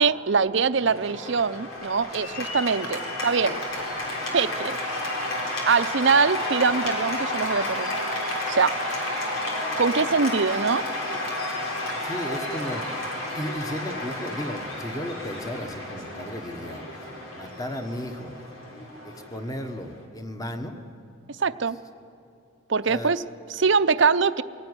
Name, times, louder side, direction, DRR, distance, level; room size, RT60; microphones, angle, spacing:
voice 1, 0.0-3.6 4.3-4.8 5.7-8.0 8.5-8.7 9.8-10.8 21.4-21.8 22.7-23.2 23.5-24.4, right 5 dB, 60° right, 13 dB, 0.6 m, -23 dB
Cheering / Applause, 0.8-20.0, left 1 dB, 90° left, 4.0 m, -31 dB
voice 2, 11.8-18.3 19.0-20.8 22.9-23.1, left 1 dB, 15° left, 6 dB, 1.4 m, -35 dB
23.0 x 17.0 x 9.8 m, 2.5 s
head